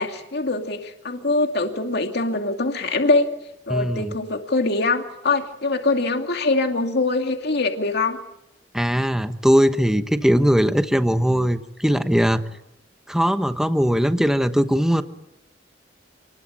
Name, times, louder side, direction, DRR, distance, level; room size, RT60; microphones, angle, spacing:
voice 1, 0.0-3.3 3.7-8.2, left 3 dB, 60° left, 5 dB, 2.5 m, -23 dB
voice 2, 3.7-4.2 8.7-12.4 13.1-15.0, equal, 5° right, 9 dB, 1.2 m, -20 dB
29.0 x 21.0 x 9.1 m, 0.86 s
head